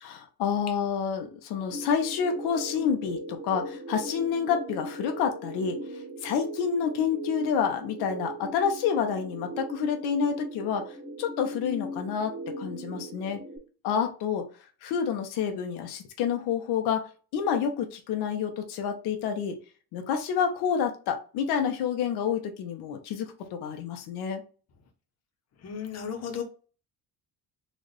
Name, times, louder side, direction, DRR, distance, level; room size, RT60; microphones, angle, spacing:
voice 1, 0.0-10.9 11.2-13.4 13.8-14.5 14.8-19.6 19.9-24.4, left 7 dB, 90° left, 5 dB, 0.8 m, -29 dB
sound 1, 1.7-13.6, right 1 dB, 75° right, 1.5 m, -39 dB
voice 2, 25.6-26.4, left 7 dB, 40° left, 5 dB, 0.9 m, -34 dB
4.0 x 2.4 x 3.3 m, 0.37 s
cardioid pair, 125°, 38 cm